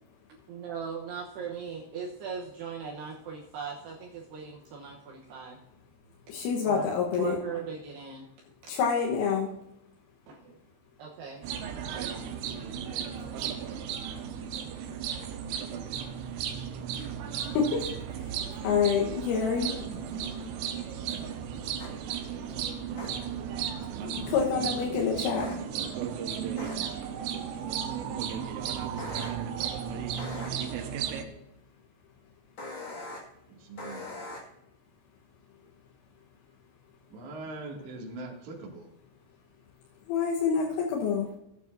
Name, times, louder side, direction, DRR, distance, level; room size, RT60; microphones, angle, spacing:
voice 1, 0.5-5.6 6.6-6.9 7.2-8.3 8.6-8.8 10.3-10.6 11.0-11.4 11.9-12.3, right 6 dB, 70° right, -2 dB, 2.7 m, -39 dB
voice 2, 6.3-7.4 8.7-9.5 17.5-19.8 24.0-25.5 30.6-30.7 40.1-41.3, left 6 dB, 90° left, -2 dB, 3.9 m, -27 dB
sound 1, 11.4-31.3, right 8 dB, 90° right, 3.5 m, -35 dB
sound 2, 21.8-21.9 23.0-23.1 25.4-25.6 26.6-26.7 29.0-29.3 30.2-30.5 32.6-33.2 33.8-34.4, left 2 dB, 50° left, 1.5 m, -40 dB
voice 3, 23.9-24.4 25.7-26.4 30.7-30.9 33.5-34.1 37.1-38.9, right 3 dB, 45° right, -2 dB, 3.0 m, -44 dB
16.5 x 9.3 x 2.7 m, 0.84 s
omnidirectional pair, 5.6 m